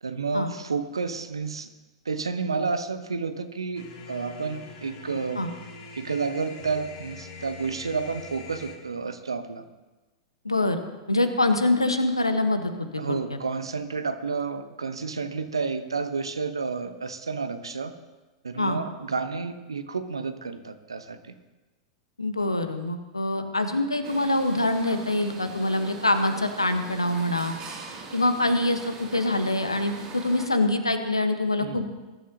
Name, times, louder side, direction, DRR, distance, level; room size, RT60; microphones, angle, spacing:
voice 1, 0.0-1.7 2.0-5.4 5.9-9.7 13.0-17.9 18.4-21.3 31.6-31.9, right 4 dB, 75° right, 9 dB, 1.0 m, -30 dB
sound 1, 3.7-8.8, left 3 dB, 45° left, 2.8 m, -43 dB
voice 2, 10.4-10.8 11.1-13.4 18.6-18.8 22.2-27.5 28.1-31.9, left 2 dB, 85° left, 8 dB, 1.2 m, -25 dB
sound 2, 24.0-30.5, right 4 dB, 35° right, 2.6 m, -42 dB
21.0 x 11.0 x 2.9 m, 1.2 s
figure-of-eight pair, 95°, 3 cm